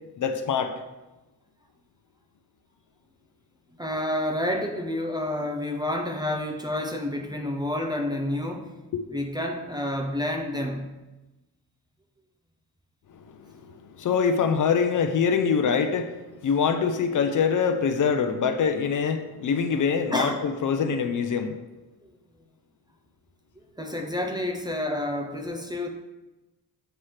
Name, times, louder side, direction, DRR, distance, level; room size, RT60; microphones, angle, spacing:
voice 1, 0.2-0.7 8.9-9.0 13.1-13.5 13.8-21.6, left 6 dB, 55° left, 8 dB, 0.6 m, -24 dB
voice 2, 3.8-8.7 9.1-10.9 20.1-20.4 22.0-22.1 23.8-25.9, left 1 dB, 10° right, 3 dB, 0.5 m, -29 dB
7.9 x 3.2 x 5.7 m, 1.1 s
wide cardioid pair, 160°, 37 cm